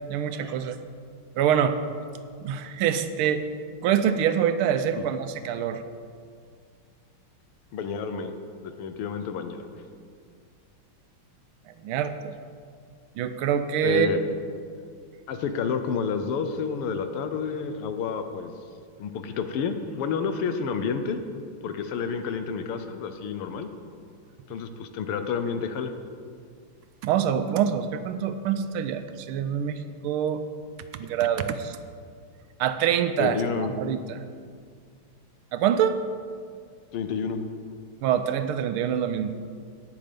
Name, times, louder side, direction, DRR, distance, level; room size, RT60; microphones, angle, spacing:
voice 1, 0.1-0.8 1.4-1.8 2.4-3.4 3.8-5.8 11.8-12.3 13.2-14.1 27.0-30.4 30.9-31.8 32.6-34.2 35.5-36.0 38.0-39.4, right 9 dB, 80° right, 10 dB, 1.4 m, -25 dB
voice 2, 7.7-8.3 8.6-9.7 13.8-14.2 15.3-18.5 19.0-21.2 21.6-23.7 24.5-25.9 33.2-33.7 36.9-37.4, left 6 dB, 85° left, 8 dB, 1.7 m, -29 dB
17.0 x 5.9 x 5.2 m, 2.1 s
omnidirectional pair, 2.4 m